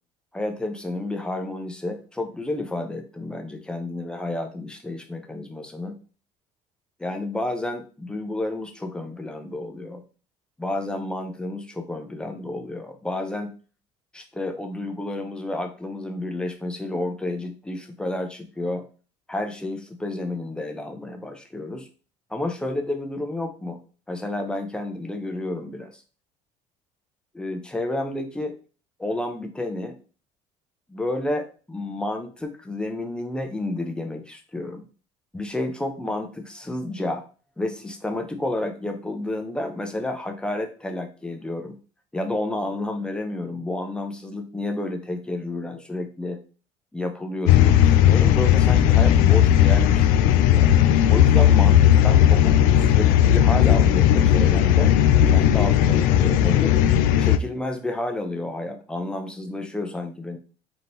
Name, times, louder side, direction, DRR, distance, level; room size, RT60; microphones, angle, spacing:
voice 1, 0.3-6.0 7.0-10.0 10.6-13.5 14.1-18.8 19.3-21.9 22.3-23.8 24.1-26.0 27.3-28.6 29.0-29.9 30.9-34.9 35.3-37.2 37.6-41.8 42.1-46.4 46.9-50.7 51.1-54.9 55.3-56.8 57.2-60.4, left 2 dB, 5° left, 5 dB, 0.6 m, -30 dB
sound 1, 47.5-57.4, left 11 dB, 85° left, 0.4 m, -16 dB
3.6 x 2.9 x 3.8 m, 0.38 s
cardioid pair, 125°, 14 cm